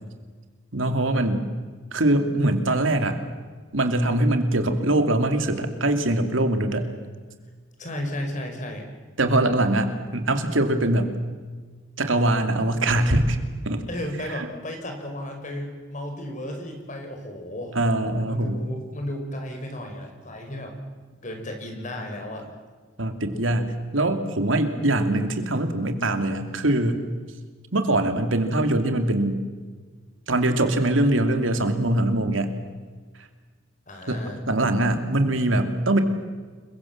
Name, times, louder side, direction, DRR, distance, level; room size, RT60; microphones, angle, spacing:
voice 1, 0.7-1.5 1.9-3.2 3.7-6.9 9.2-11.1 12.0-13.8 14.3-14.5 17.7-18.6 23.0-27.0 27.7-29.4 30.3-32.5 34.1-36.0, right 1 dB, 80° right, 7 dB, 2.8 m, -22 dB
voice 2, 7.8-8.9 13.9-17.8 18.3-20.8 21.2-22.5 33.9-34.4, left 1 dB, 40° left, 4 dB, 5.5 m, -34 dB
29.0 x 23.0 x 7.4 m, 1.5 s
head